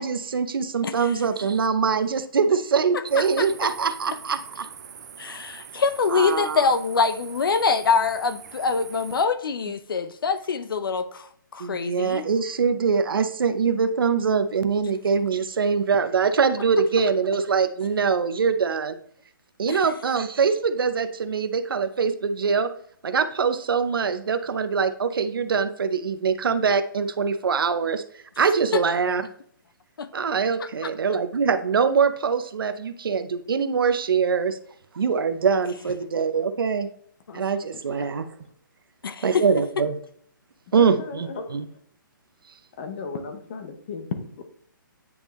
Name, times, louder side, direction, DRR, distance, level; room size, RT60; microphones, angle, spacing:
voice 1, 0.0-4.7 6.1-6.7 11.6-19.0 19.6-22.7 23.0-28.0 28.4-29.2 30.1-34.6 34.9-36.9 37.3-38.3 39.2-40.0 40.7-41.7, right 5 dB, 85° right, 0.7 m, -23 dB
voice 2, 2.9-3.7 5.2-12.2 19.7-19.8 28.7-28.8 30.0-30.1 30.6-30.9 37.3-37.4 39.0-39.4, left 5 dB, 80° left, 0.6 m, -25 dB
sound 1, 3.1-9.3, right 7 dB, 50° right, 0.7 m, -44 dB
voice 3, 38.0-38.4 40.7-41.6 42.8-44.4, left 4 dB, 30° left, 0.8 m, -35 dB
9.4 x 3.6 x 3.0 m
hypercardioid pair, 170°, 11 cm